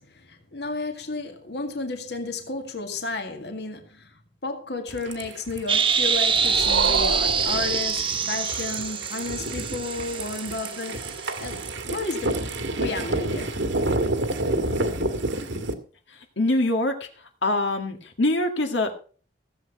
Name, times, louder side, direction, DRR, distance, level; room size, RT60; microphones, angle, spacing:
voice 1, 0.0-11.6 11.9-12.4 12.8-13.6, left 3 dB, 60° left, 2.0 m, -32 dB
sound 1, 4.9-15.7, right 2 dB, 85° right, 1.9 m, -30 dB
sound 2, 5.7-11.5, right 6 dB, 25° right, 1.2 m, -25 dB
sound 3, 5.9-8.6, right 4 dB, 65° right, 0.8 m, -29 dB
voice 2, 16.4-17.1 17.4-19.0, left 2 dB, 80° left, 2.0 m, -24 dB
15.5 x 8.2 x 5.5 m
head